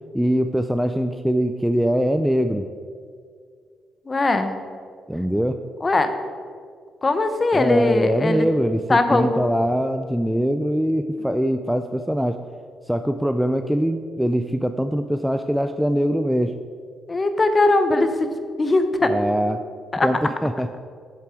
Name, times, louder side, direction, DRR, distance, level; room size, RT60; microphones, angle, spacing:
voice 1, 0.1-2.7 5.1-5.6 7.5-12.4 12.9-16.5 19.0-19.6 20.0-20.7, equal, ahead, 8 dB, 0.3 m, -22 dB
voice 2, 4.1-4.5 5.8-6.1 7.0-8.5 8.9-9.5 17.1-19.1 19.9-20.1, left 2 dB, 25° left, 8 dB, 0.8 m, -20 dB
7.4 x 7.1 x 4.9 m, 2.1 s
cardioid pair, 90°, 0 cm